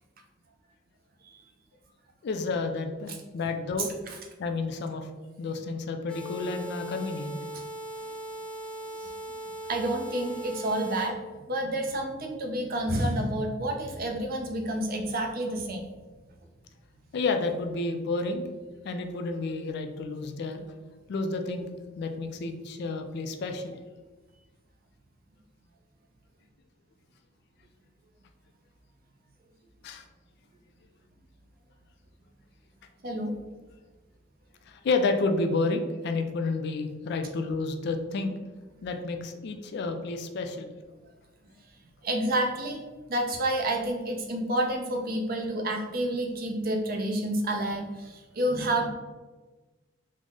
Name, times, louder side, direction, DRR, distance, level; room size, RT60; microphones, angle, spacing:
voice 1, 2.2-3.9 4.4-5.1 5.4-7.4 17.1-18.5 18.8-20.6 21.1-21.7 22.0-23.8 29.8-30.0 34.7-38.3 38.8-40.7, left 3 dB, 60° left, 6 dB, 0.3 m, -30 dB
sound 1, 6.1-11.1, right 1 dB, 5° left, 0.5 m, -39 dB
voice 2, 9.7-11.2 11.5-15.8 33.0-33.4 42.0-42.8 43.1-48.9, right 1 dB, 50° right, 3 dB, 0.5 m, -29 dB
3.8 x 2.0 x 3.5 m, 1.3 s
head